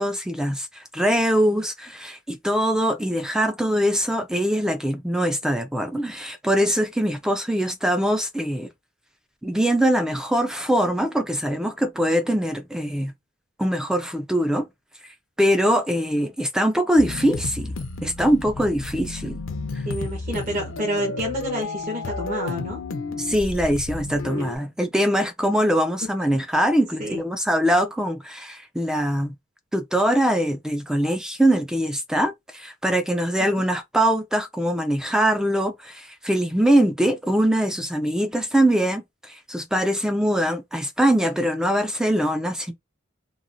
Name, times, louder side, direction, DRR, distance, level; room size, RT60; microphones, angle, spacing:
voice 1, 0.0-8.7 9.4-13.1 13.6-14.7 15.4-17.7 18.0-19.4 23.2-29.3 29.7-42.7, equal, 5° right, 0.3 m, -22 dB
sound 1, 17.0-24.6, left 3 dB, 80° left, 0.6 m, -32 dB
voice 2, 19.8-22.8 24.2-24.5 27.0-27.2 33.4-33.5, equal, 45° right, 0.9 m, -29 dB
3.0 x 2.3 x 2.5 m
head